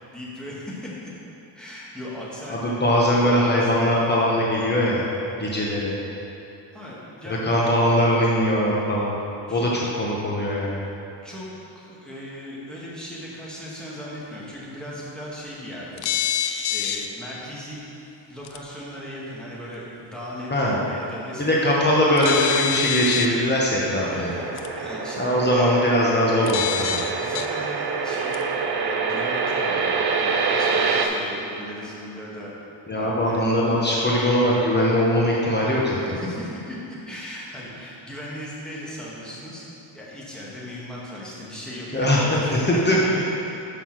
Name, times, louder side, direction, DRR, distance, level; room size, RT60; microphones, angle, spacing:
voice 1, 0.1-0.9 1.5-2.8 3.1-3.9 6.7-7.4 9.5-9.8 11.2-11.5 11.8-16.0 16.3-17.8 18.3-21.7 24.1-25.2 27.1-28.4 28.7-29.9 30.2-32.5 32.9-33.4 35.9-36.8 37.1-39.7 39.9-43.0, equal, ahead, -7 dB, 1.8 m, -37 dB
voice 2, 2.5-5.0 5.4-5.9 7.3-9.1 9.5-10.8 20.5-20.8 21.4-24.3 25.2-27.0 32.9-36.0 41.9-43.0, equal, 25° left, -5 dB, 1.1 m, -21 dB
sound 1, 16.0-17.1 18.4-18.6 22.2-23.3 24.6-24.7 26.5-27.5 28.3-28.4, left 10 dB, 60° left, 0.6 m, -26 dB
sound 2, 24.2-31.1, right 5 dB, 55° right, 0.8 m, -26 dB
6.5 x 5.6 x 6.1 m, 2.8 s
cardioid pair, 120°, 45 cm